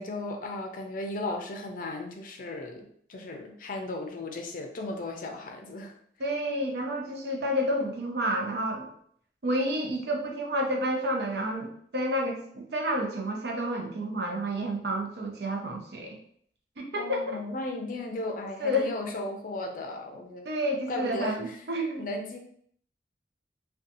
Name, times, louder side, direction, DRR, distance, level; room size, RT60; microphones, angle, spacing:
voice 1, 0.0-5.9 17.0-20.5 20.9-21.6 22.0-22.4, left 2 dB, 50° left, 3 dB, 0.4 m, -36 dB
voice 2, 6.2-8.9 9.4-16.2 16.8-17.4 18.6-18.9 20.5-22.1, equal, 65° right, 1 dB, 0.6 m, -30 dB
2.7 x 2.2 x 2.6 m, 0.64 s
head